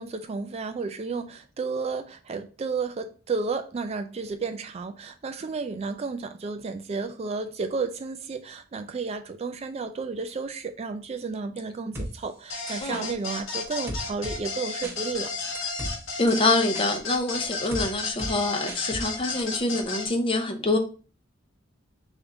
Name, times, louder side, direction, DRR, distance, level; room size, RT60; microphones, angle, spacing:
voice 1, 0.0-15.3, right 4 dB, 30° right, 0.3 m, -32 dB
sound 1, 11.9-12.1 12.7-13.0 13.9-14.4 14.8-15.0 15.5-15.9 16.3-16.9 17.7-17.8 18.2-18.3 18.7-19.0 19.4-19.5, equal, 10° right, 1.0 m, -34 dB
sound 2, 12.5-20.1, left 4 dB, 85° left, 1.3 m, -33 dB
voice 2, 16.2-20.8, left 2 dB, 25° left, 0.7 m, -25 dB
3.6 x 3.5 x 4.0 m
head